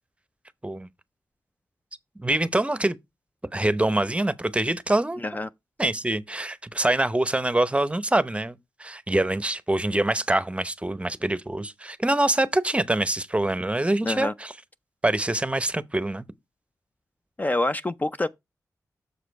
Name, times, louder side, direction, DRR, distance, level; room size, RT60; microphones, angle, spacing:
voice 1, 2.2-3.0 3.5-5.2 5.8-14.5 15.0-16.2, right 1 dB, 20° right, 0.7 m, -25 dB
voice 2, 14.0-14.3 17.4-18.3, left 2 dB, 25° left, 0.4 m, -26 dB
6.7 x 4.9 x 4.6 m
cardioid pair, 55°, 7 cm